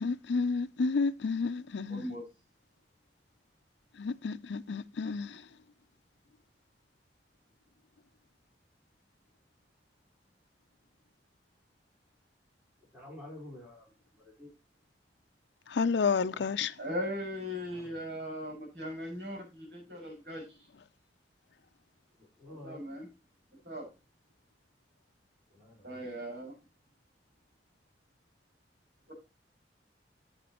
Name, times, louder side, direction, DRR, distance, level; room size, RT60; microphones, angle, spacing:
voice 1, 0.0-2.0 4.0-5.3 15.8-16.7, left 4 dB, 85° left, 0.5 m, -30 dB
voice 2, 1.9-2.2 16.8-20.6 22.5-23.1 23.6-23.9 25.8-26.6, equal, 70° right, 6.0 m, -39 dB
voice 3, 12.9-13.9 14.4-14.5 16.3-16.5 17.7-17.9 22.2-22.8 25.5-26.0, left 1 dB, 10° right, 4.5 m, -49 dB
10.5 x 8.0 x 2.9 m
head